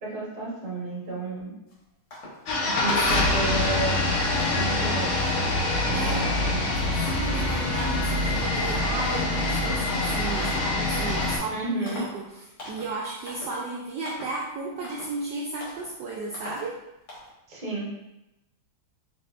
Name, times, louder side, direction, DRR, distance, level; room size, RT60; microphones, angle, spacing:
voice 1, 0.0-1.5 2.6-4.0 4.5-5.1 5.8-6.6 11.5-12.0 17.5-17.9, right 2 dB, 35° right, -5 dB, 0.8 m, -32 dB
sound 1, 1.7-1.8 2.1-2.5 2.8-3.3 3.6-4.0 4.4-4.8 5.2-5.6 6.1-6.5 6.8-7.5 7.8-8.2 8.6-9.0 9.4-9.9 10.3-10.7 11.1-11.5 11.9-12.2 12.6-13.0 13.3-13.6 14.0-14.4 14.8-15.2 15.6-15.9 16.3-16.7 17.1-17.3, left 1 dB, 55° left, 1.6 m, -41 dB
sound 2, 2.5-11.4, left 2 dB, 75° left, 1.5 m, -25 dB
voice 2, 5.9-6.2 6.9-16.8, right 3 dB, 80° right, -3 dB, 0.9 m, -34 dB
4.1 x 3.7 x 2.4 m, 0.92 s
omnidirectional pair, 2.3 m